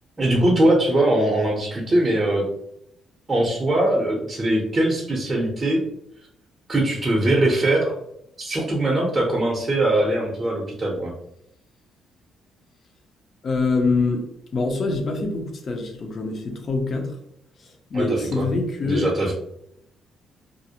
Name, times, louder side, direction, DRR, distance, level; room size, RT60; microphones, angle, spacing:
voice 1, 0.2-2.4 3.3-5.8 6.7-8.0 8.4-11.1 17.9-18.0 18.4-18.5 18.8-19.3, right 1 dB, 25° right, -3 dB, 0.6 m, -21 dB
voice 2, 13.4-17.2 17.6-19.3, left 3 dB, 50° left, 3 dB, 0.6 m, -25 dB
2.5 x 2.0 x 2.7 m, 0.76 s
cardioid pair, 90°, 0 cm